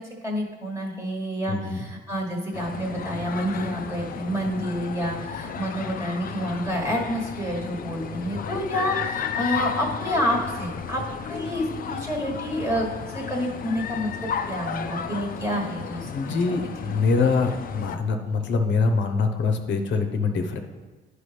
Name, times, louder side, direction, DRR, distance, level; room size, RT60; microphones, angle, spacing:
voice 1, 0.0-11.0 11.3-17.0, equal, 15° right, -2 dB, 1.3 m, -29 dB
voice 2, 1.5-1.9 16.1-20.6, left 4 dB, 65° left, 6 dB, 0.8 m, -24 dB
sound 1, 2.5-18.0, left 7 dB, 45° left, 0.5 m, -33 dB
9.9 x 4.9 x 3.3 m, 1.2 s
cardioid pair, 90°, 20 cm